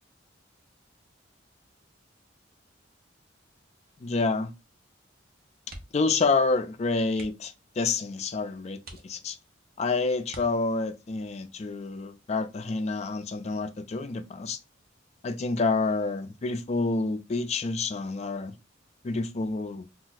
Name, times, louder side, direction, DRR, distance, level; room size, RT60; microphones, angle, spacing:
voice 1, 4.0-4.5 5.9-9.4 9.8-14.6 15.2-18.5 19.0-19.9, left 3 dB, 35° left, 0.3 m, -28 dB
sound 1, 5.6-6.2 6.5-6.6 7.1-7.6 8.2-8.3 8.8-9.6 10.3-11.0 12.6-12.9 13.3-13.4, right 2 dB, 50° right, 0.7 m, -47 dB
2.5 x 2.2 x 3.9 m
head